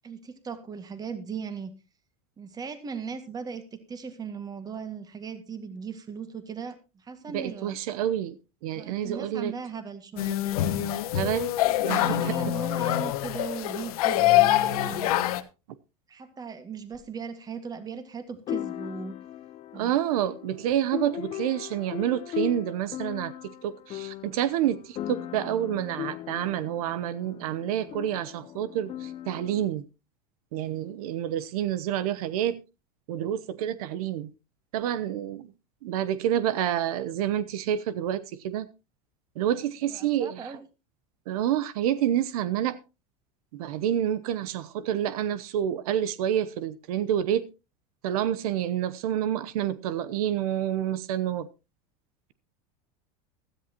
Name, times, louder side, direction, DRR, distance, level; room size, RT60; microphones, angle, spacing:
voice 1, 0.0-1.7 2.4-7.8 8.7-11.0 11.8-15.1 16.1-19.2 19.7-19.9 39.9-40.6, right 6 dB, 20° right, 1.9 m, -38 dB
voice 2, 7.3-9.5 11.1-11.6 11.8-12.5 19.7-29.9 30.5-32.6 33.1-34.3 34.7-35.5 35.8-38.7 39.4-40.6 41.3-42.8 43.5-47.5 48.0-51.5, right 11 dB, 80° right, 0.9 m, -28 dB
sound 1, 10.2-15.4, left 15 dB, 85° left, 1.3 m, -25 dB
sound 2, 16.9-17.0 18.5-29.7, left 12 dB, 30° left, 0.7 m, -38 dB
16.0 x 13.5 x 2.9 m
supercardioid pair, 140°, 18 cm